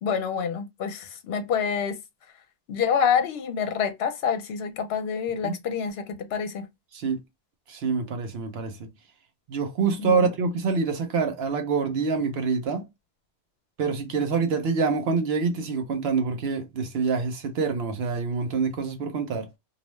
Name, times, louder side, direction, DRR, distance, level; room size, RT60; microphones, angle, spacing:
voice 1, 0.0-1.9 2.7-6.0 6.3-6.6 10.0-10.2, left 7 dB, 70° left, 0.8 m, -27 dB
voice 2, 7.7-8.9 9.5-12.8 13.8-19.5, right 5 dB, 70° right, 0.9 m, -26 dB
2.7 x 2.1 x 3.0 m
omnidirectional pair, 1.1 m